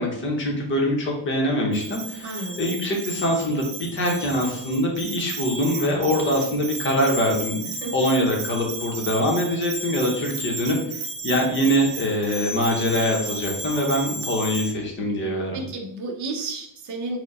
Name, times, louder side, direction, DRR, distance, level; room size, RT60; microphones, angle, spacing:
voice 1, 0.0-10.8 11.2-15.6, equal, 25° left, 0 dB, 0.8 m, -24 dB
Bell, 1.7-14.7, right 3 dB, 75° right, 1.0 m, -34 dB
voice 2, 2.2-2.6 7.8-8.1 15.5-17.2, right 3 dB, 40° right, 2 dB, 0.9 m, -32 dB
4.5 x 2.2 x 4.7 m, 0.75 s
cardioid pair, 165°, 45 cm